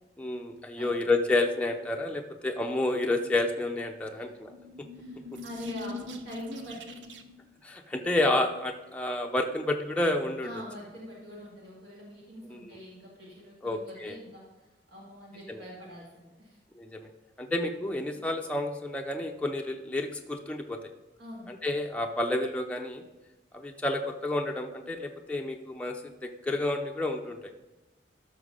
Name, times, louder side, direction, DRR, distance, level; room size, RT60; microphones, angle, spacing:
voice 1, 0.2-4.5 4.8-4.9 7.6-10.5 12.5-12.6 13.6-14.2 15.5-15.6 16.7-17.1 17.4-20.8 21.5-23.0 23.5-27.5, left 2 dB, 5° left, 2 dB, 0.6 m, -30 dB
sound 1, 4.4-7.5, left 2 dB, 90° right, 0.7 m, -42 dB
voice 2, 4.9-7.2 10.4-16.6 21.2-21.5, left 1 dB, 70° right, -4 dB, 2.0 m, -44 dB
13.0 x 6.2 x 3.9 m, 1.1 s
head